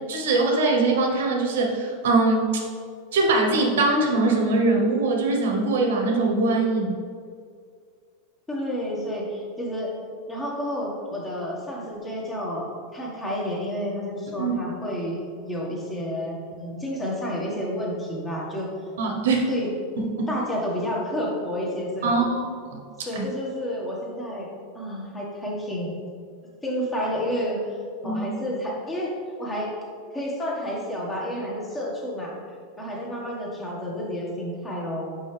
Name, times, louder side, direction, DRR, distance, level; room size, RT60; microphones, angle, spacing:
voice 1, 0.1-2.6 3.1-7.0 14.4-14.5 19.0-19.5 20.0-20.1 22.0-22.4 22.7-23.3 28.0-28.2, right 3 dB, 80° right, 1 dB, 1.1 m, -22 dB
voice 2, 8.5-9.9 10.3-18.7 19.5-19.7 20.3-22.2 23.0-24.5 24.7-25.9 26.6-27.8 28.0-29.1 29.4-29.7 30.1-32.3 32.8-35.1, equal, 15° left, -3 dB, 1.5 m, -30 dB
5.5 x 5.3 x 3.4 m, 2.1 s
supercardioid pair, 130°, 0 cm